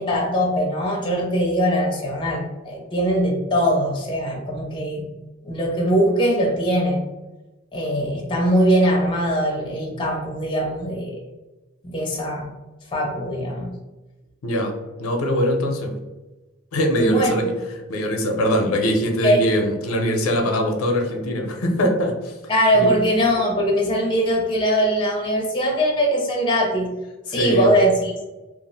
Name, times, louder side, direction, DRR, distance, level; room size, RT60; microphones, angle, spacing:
voice 1, 0.0-5.0 5.4-7.0 7.7-11.2 11.8-12.5 12.9-13.7 17.0-17.3 19.2-19.4 22.5-26.9 27.3-28.1, equal, 20° left, -1 dB, 0.5 m, -21 dB
voice 2, 15.0-15.9 16.7-17.5 17.9-22.3 22.8-22.9 27.3-27.7, equal, 80° left, 2 dB, 0.6 m, -22 dB
2.4 x 2.0 x 3.8 m, 1.1 s
head